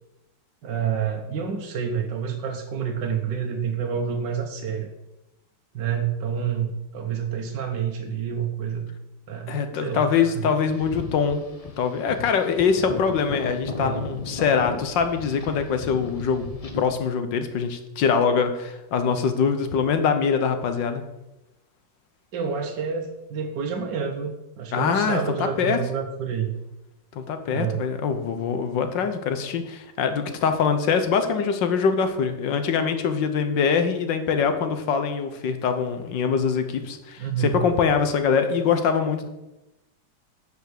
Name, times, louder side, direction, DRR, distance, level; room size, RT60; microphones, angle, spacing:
voice 1, 0.6-4.9 5.7-8.9 9.3-10.5 13.8-14.0 22.3-26.5 27.5-27.8 37.2-37.6, right 7 dB, 65° right, 2 dB, 1.6 m, -28 dB
voice 2, 9.5-21.0 24.7-25.8 27.1-39.3, left 6 dB, 70° left, 8 dB, 1.6 m, -23 dB
sound 1, 10.7-16.9, left 3 dB, 35° left, 0.5 m, -36 dB
9.9 x 5.8 x 6.6 m, 0.94 s
omnidirectional pair, 2.1 m